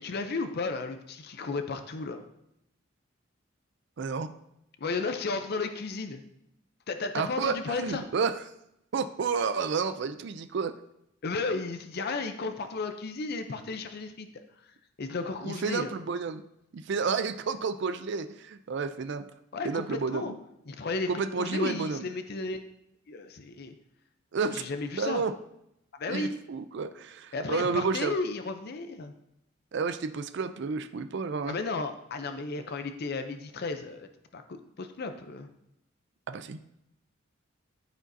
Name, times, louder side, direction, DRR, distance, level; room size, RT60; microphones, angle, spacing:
voice 1, 0.0-2.2 4.8-6.2 6.9-8.0 11.2-14.3 15.0-15.9 19.5-20.3 20.7-21.1 21.3-22.6 23.1-23.7 24.5-25.2 26.0-26.3 27.3-29.1 31.5-35.5, left 3 dB, 55° left, 7 dB, 0.6 m, -33 dB
voice 2, 4.0-4.3 7.1-8.4 8.9-10.7 15.4-16.4 16.7-19.2 19.6-20.3 21.1-22.0 24.3-24.7 25.0-25.3 26.1-28.1 29.7-31.6 36.3-36.6, right 5 dB, 65° right, 11 dB, 0.4 m, -31 dB
13.5 x 5.0 x 2.7 m, 0.81 s
head